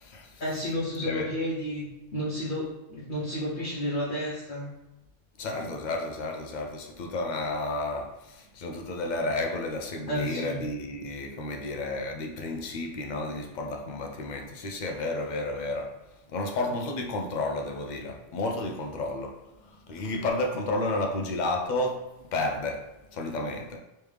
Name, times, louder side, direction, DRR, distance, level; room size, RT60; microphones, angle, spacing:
voice 1, 0.4-1.8 2.1-4.7 10.1-10.6, equal, 45° left, 0.9 m, -31 dB
voice 2, 1.0-1.3 5.4-16.0 16.3-19.3 19.9-23.8, left 2 dB, 70° left, 0.4 m, -31 dB
3.4 x 3.1 x 3.2 m
omnidirectional pair, 1.3 m